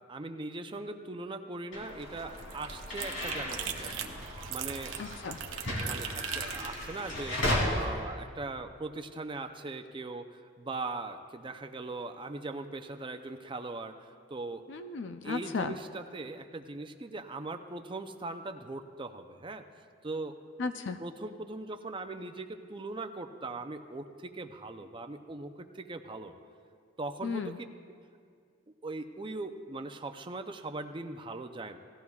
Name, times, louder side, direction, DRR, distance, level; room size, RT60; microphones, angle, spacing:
voice 1, 0.1-5.0 5.8-7.4 7.6-14.6 15.2-19.6 20.0-20.4 21.0-26.3 27.0-27.7 28.8-31.8, right 2 dB, 25° right, 7 dB, 0.5 m, -40 dB
sound 1, 1.7-7.6, left 1 dB, 80° left, 2.9 m, -36 dB
sound 2, 1.8-7.9, right 7 dB, 80° right, 0.8 m, -41 dB
voice 2, 5.0-5.4 14.7-15.7 20.6-21.0 27.2-27.6, left 4 dB, 65° left, 8 dB, 0.4 m, -35 dB
18.5 x 14.5 x 2.4 m, 2.2 s
head